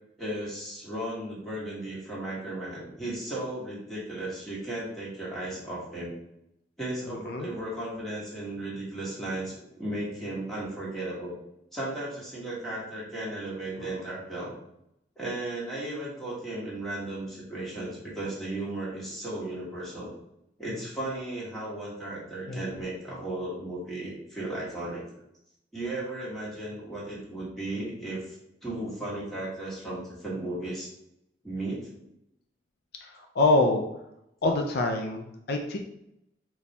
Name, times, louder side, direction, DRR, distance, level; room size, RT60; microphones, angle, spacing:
voice 1, 0.2-6.1 6.8-11.3 11.7-14.5 15.1-20.1 20.6-25.1 25.7-30.9 31.4-32.1, right 1 dB, ahead, -7 dB, 1.4 m, -35 dB
voice 2, 33.0-33.8 34.4-35.8, left 2 dB, 60° left, 4 dB, 0.4 m, -25 dB
4.1 x 2.3 x 4.1 m, 0.80 s
head